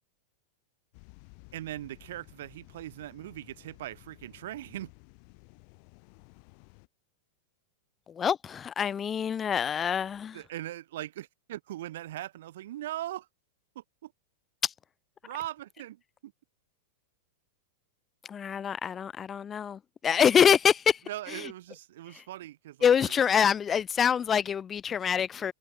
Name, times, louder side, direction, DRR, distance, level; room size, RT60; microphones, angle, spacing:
sound 1, 0.9-6.9, left 40 dB or more, 55° left, 5.2 m, -55 dB
voice 1, 1.5-4.9 10.3-13.3 13.7-14.1 15.2-16.3 21.1-23.1, right 14 dB, 70° right, 6.7 m, -40 dB
voice 2, 8.1-10.4 14.6-14.7 18.3-21.0 21.3-21.5 22.1-22.2 22.8-25.5, left 8 dB, 25° left, 1.6 m, -25 dB
hypercardioid pair, 115°, 0 cm